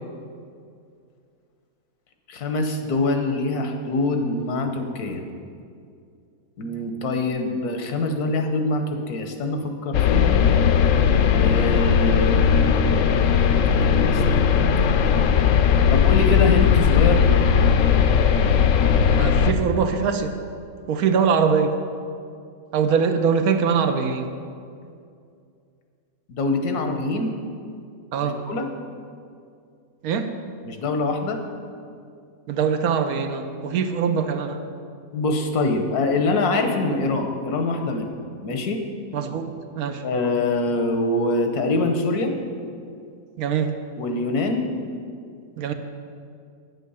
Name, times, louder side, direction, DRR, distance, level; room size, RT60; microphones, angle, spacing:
voice 1, 2.3-5.2 6.6-10.4 11.4-12.4 13.8-14.7 15.9-17.2 26.3-27.4 28.2-28.7 30.6-31.4 35.1-38.1 38.4-38.8 40.0-42.3 44.0-44.7, left 2 dB, 85° left, 5 dB, 1.5 m, -24 dB
sound 1, 9.9-19.5, left 7 dB, 70° left, 0.9 m, -18 dB
voice 2, 19.1-20.4 20.9-21.8 22.7-24.3 28.1-28.4 30.0-30.3 32.5-34.6 39.1-40.0 43.4-43.8 45.6-45.7, right 6 dB, 75° right, 7 dB, 1.2 m, -23 dB
9.3 x 7.6 x 5.5 m, 2.3 s
omnidirectional pair, 1.6 m